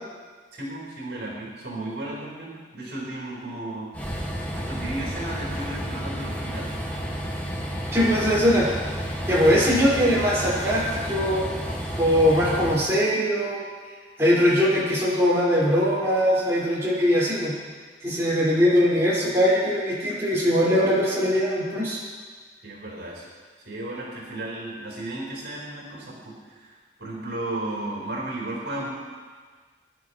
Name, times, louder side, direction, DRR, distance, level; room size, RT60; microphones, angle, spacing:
voice 1, 0.5-3.9 4.5-6.8 22.6-23.3 23.6-28.9, right 1 dB, 70° right, -4 dB, 4.4 m, -34 dB
Train, 3.9-12.7, equal, 10° left, 1.9 m, -31 dB
voice 2, 7.9-8.7 9.3-11.4 12.0-13.6 14.2-17.6 18.0-22.0, equal, 15° right, -9 dB, 5.4 m, -21 dB
23.0 x 11.5 x 3.3 m, 1.5 s
head